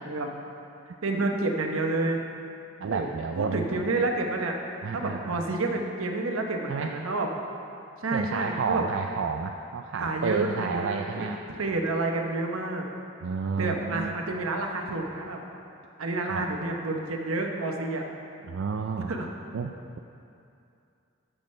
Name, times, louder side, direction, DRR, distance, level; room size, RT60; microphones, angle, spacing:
voice 1, 1.0-2.2 2.8-3.1 3.4-4.6 4.9-7.3 8.0-8.8 10.0-11.3 11.6-12.9 13.6-15.4 16.0-18.0 19.0-19.3, right 2 dB, 85° right, 2 dB, 0.9 m, -29 dB
voice 2, 2.8-3.8 4.8-5.4 6.7-6.9 8.1-11.4 13.2-14.1 16.2-16.4 18.5-19.1 19.5-20.0, right 5 dB, 70° right, 3 dB, 0.3 m, -31 dB
13.0 x 6.1 x 3.2 m, 2.6 s
head